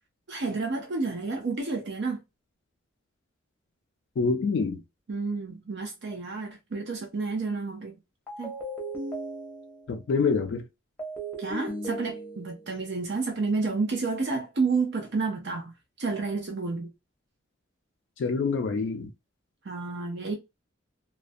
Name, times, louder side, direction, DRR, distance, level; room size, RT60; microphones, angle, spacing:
voice 1, 0.3-2.2 5.1-8.0 8.4-8.5 11.4-16.9 19.6-20.4, right 4 dB, 60° right, 0.5 m, -30 dB
voice 2, 4.2-4.8 9.9-10.7 18.2-19.1, left 4 dB, 65° left, 0.3 m, -26 dB
sound 1, 8.3-10.0 11.0-12.7, right 1 dB, 10° left, 0.7 m, -36 dB
2.4 x 2.1 x 2.5 m
head